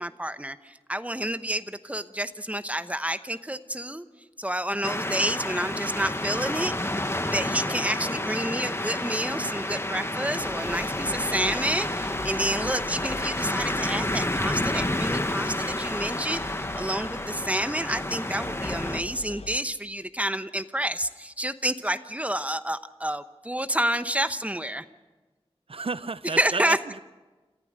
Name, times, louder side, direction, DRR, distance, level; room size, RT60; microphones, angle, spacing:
voice 1, 0.0-4.1 4.4-6.7 7.2-16.4 16.8-24.9 26.2-26.8, right 1 dB, 15° right, 11 dB, 0.9 m, -29 dB
sound 1, 4.8-19.0, left 1 dB, 25° left, 1.2 m, -30 dB
sound 2, 10.4-19.6, left 4 dB, 80° left, 0.6 m, -43 dB
voice 2, 25.7-27.0, right 4 dB, 60° right, 15 dB, 0.6 m, -32 dB
28.0 x 14.5 x 6.6 m, 1.2 s
wide cardioid pair, 60°, 11 cm